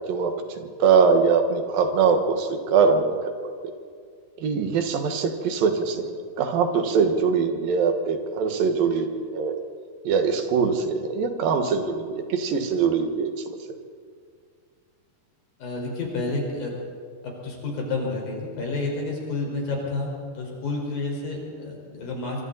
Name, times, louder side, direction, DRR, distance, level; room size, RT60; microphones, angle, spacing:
voice 1, 0.1-3.5 4.4-9.6 10.0-13.4, right 5 dB, 80° right, 6 dB, 3.3 m, -22 dB
voice 2, 15.6-16.7 17.2-22.4, left 3 dB, 80° left, -1 dB, 6.6 m, -30 dB
25.0 x 25.0 x 4.1 m, 2.1 s
omnidirectional pair, 4.0 m